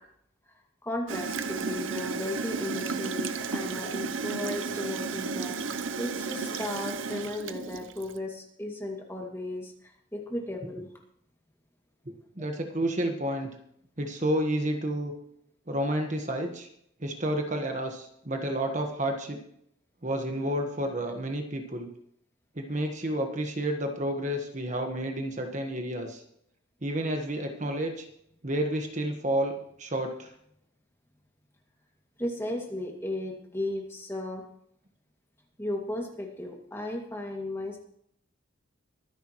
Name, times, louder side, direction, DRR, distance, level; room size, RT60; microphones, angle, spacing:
voice 1, 0.8-10.9 32.2-34.4 35.6-37.8, left 1 dB, 10° left, 0 dB, 2.2 m, -35 dB
Gurgling / Toilet flush, 1.1-8.2, right 4 dB, 75° right, 0.8 m, -33 dB
voice 2, 12.1-13.5 14.0-15.1 15.7-16.7 17.0-19.4 20.0-21.9 22.5-26.2 26.8-28.1 28.4-29.5 29.8-30.3, right 1 dB, 35° right, 3 dB, 1.4 m, -30 dB
23.5 x 10.5 x 3.1 m, 0.72 s
head